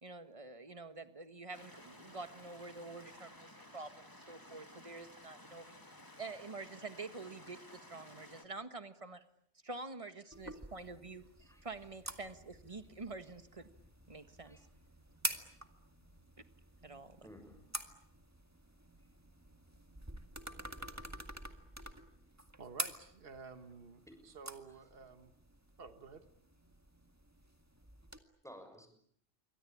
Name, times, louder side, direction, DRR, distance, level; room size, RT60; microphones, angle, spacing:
voice 1, 0.0-5.8 6.2-9.2 9.6-11.2 11.6-13.7 14.1-14.6 16.8-17.2, right 3 dB, 30° right, 10 dB, 1.7 m, -47 dB
sound 1, 1.5-8.4, left 1 dB, 20° left, 2.4 m, -56 dB
sound 2, 10.3-28.2, right 1 dB, 15° right, 1.9 m, -47 dB
voice 2, 17.2-17.6 24.1-24.2 28.4-28.9, equal, 5° left, 6 dB, 6.2 m, -55 dB
voice 3, 22.6-25.3 25.8-26.2, right 4 dB, 55° right, 9 dB, 1.7 m, -52 dB
28.0 x 24.0 x 8.6 m, 0.68 s
omnidirectional pair, 1.1 m